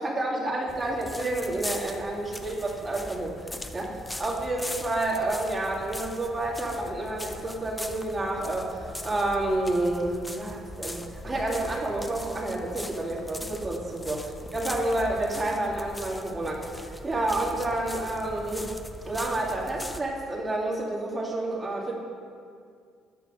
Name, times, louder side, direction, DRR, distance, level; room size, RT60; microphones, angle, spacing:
voice 1, 0.0-18.7 19.0-22.0, right 2 dB, 30° right, -4 dB, 2.2 m, -29 dB
sound 1, 0.7-20.0, left 1 dB, 10° left, 0.6 m, -40 dB
9.7 x 5.9 x 6.2 m, 2.2 s
cardioid pair, 100°, 0 cm